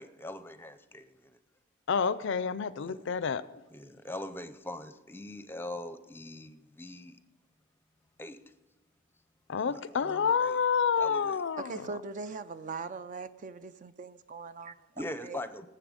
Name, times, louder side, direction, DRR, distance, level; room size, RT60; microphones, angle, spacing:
voice 1, 0.0-1.4 2.8-3.0 3.7-7.2 8.2-8.4 9.6-10.6 11.0-11.4 15.0-15.7, left 1 dB, 10° left, 10 dB, 0.6 m, -42 dB
voice 2, 1.9-3.6 9.5-11.8, left 6 dB, 60° left, 16 dB, 0.4 m, -29 dB
voice 3, 11.6-14.8 15.2-15.4, right 4 dB, 40° right, 13 dB, 0.4 m, -40 dB
18.5 x 7.7 x 5.1 m, 1.1 s
head